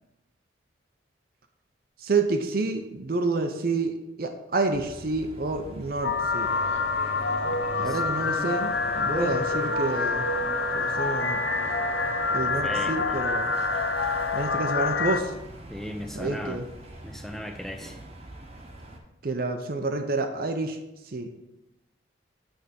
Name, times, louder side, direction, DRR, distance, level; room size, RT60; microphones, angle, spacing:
voice 1, 2.0-6.5 7.7-10.3 10.7-11.4 12.3-13.5 14.3-15.3 16.1-16.6 19.2-20.8 21.1-21.3, right 3 dB, 50° right, 6 dB, 0.6 m, -29 dB
sound 1, 4.7-19.0, right 1 dB, 35° right, 0.9 m, -43 dB
sound 2, 6.0-15.2, left 3 dB, 65° left, 0.5 m, -27 dB
sound 3, 6.3-12.3, left 1 dB, 35° left, 1.0 m, -43 dB
voice 2, 7.8-8.6 8.9-9.7 12.6-13.2 15.7-16.6 17.0-18.0, equal, ahead, 5 dB, 0.5 m, -37 dB
8.8 x 3.5 x 5.1 m, 0.94 s
head